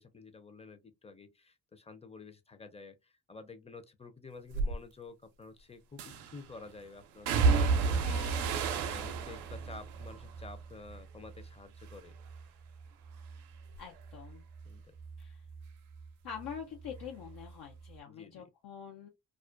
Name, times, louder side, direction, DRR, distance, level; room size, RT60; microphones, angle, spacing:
voice 1, 0.0-8.2 8.8-12.2 14.6-14.8 18.1-18.5, left 3 dB, 15° left, 0.5 m, -50 dB
sound 1, 4.5-4.7 6.0-6.4 7.3-11.5 11.8-12.4 12.8-16.1 16.4-17.5 17.8-17.9, right 4 dB, 85° right, 0.5 m, -33 dB
voice 2, 8.0-8.5 13.8-14.5 15.2-15.4 16.2-19.1, left 7 dB, 70° left, 0.6 m, -45 dB
2.4 x 2.1 x 2.4 m
supercardioid pair, 50°, 39 cm